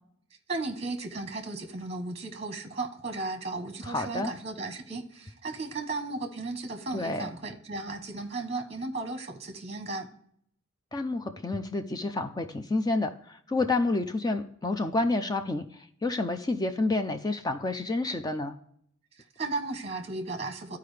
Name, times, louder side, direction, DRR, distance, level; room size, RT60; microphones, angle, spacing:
voice 1, 0.5-10.1 19.2-20.8, right 3 dB, 30° right, 7 dB, 1.0 m, -35 dB
voice 2, 3.8-4.3 6.9-7.3 10.9-18.5, left 2 dB, 20° left, 8 dB, 0.4 m, -29 dB
12.5 x 4.7 x 3.2 m, 0.66 s
head